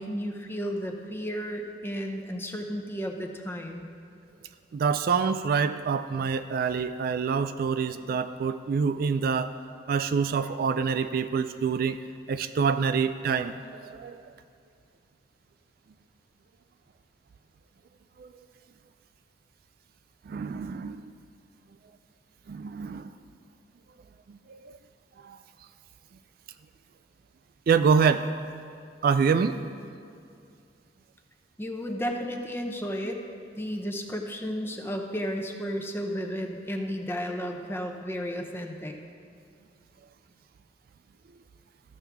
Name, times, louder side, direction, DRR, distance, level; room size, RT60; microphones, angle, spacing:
voice 1, 0.0-3.8 31.6-33.2 33.6-39.0, equal, 15° left, 3 dB, 0.7 m, -33 dB
voice 2, 4.7-9.5 9.9-12.0 12.3-14.2 18.2-18.3 20.3-21.1 22.5-23.1 24.3-24.7 25.2-25.4 27.7-28.3 29.0-29.6, right 6 dB, 55° right, 11 dB, 0.3 m, -26 dB
13.5 x 7.1 x 3.5 m, 2.5 s
head